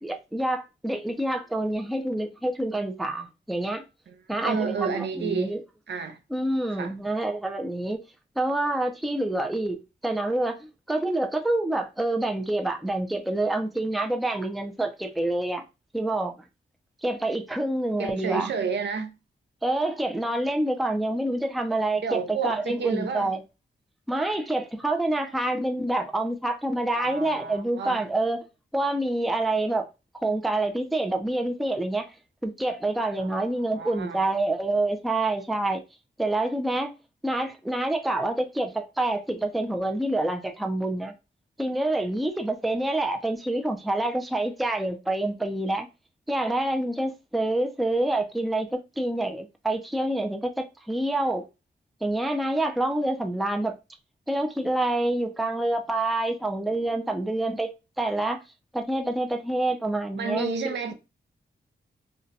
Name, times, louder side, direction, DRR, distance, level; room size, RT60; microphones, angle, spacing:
voice 1, 0.0-3.8 4.3-5.6 6.3-8.0 8.4-15.6 15.9-16.3 17.0-18.5 19.6-23.4 24.1-28.4 28.7-29.9 30.2-32.1 32.4-35.8 36.2-36.9 37.2-41.1 41.6-45.9 46.3-51.4 52.0-53.7 54.3-57.7 58.0-58.4 58.7-60.9, right 1 dB, ahead, 0.4 m, -27 dB
voice 2, 4.1-5.6 5.9-6.2 6.8-6.9 18.0-19.1 22.0-23.3 26.9-28.0 33.2-34.2 60.2-60.9, right 5 dB, 70° right, 0.6 m, -31 dB
2.6 x 2.2 x 3.9 m
wide cardioid pair, 115°, 19 cm